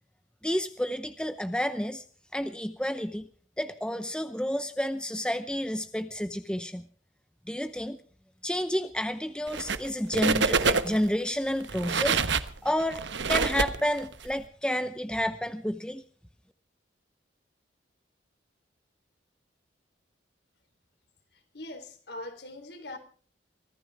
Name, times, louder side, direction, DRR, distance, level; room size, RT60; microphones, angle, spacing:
voice 1, 0.4-2.0 2.3-3.3 3.6-6.8 7.5-8.0 8.4-12.2 12.6-13.0 13.3-16.0, equal, 5° left, 0.7 m, -30 dB
sound 1, 9.5-9.9 10.1-11.1 11.6-14.3, right 5 dB, 70° right, 1.1 m, -27 dB
voice 2, 21.5-23.0, left 1 dB, 60° left, 3.7 m, -41 dB
24.0 x 15.5 x 3.5 m
head